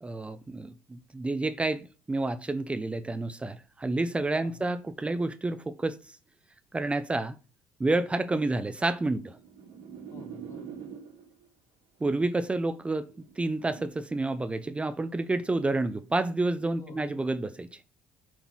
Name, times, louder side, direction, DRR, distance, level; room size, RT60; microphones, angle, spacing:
voice 1, 0.0-6.1 6.7-7.3 7.8-9.4 12.0-13.1 13.4-17.8, right 2 dB, 20° right, 0.7 m, -29 dB
voice 2, 4.3-4.7 10.1-10.8 16.8-17.2, left 4 dB, 50° left, 3.7 m, -49 dB
sound 1, 8.7-11.4 12.3-13.9, right 7 dB, 80° right, 2.9 m, -45 dB
7.3 x 3.8 x 6.1 m
supercardioid pair, 70°, 7 cm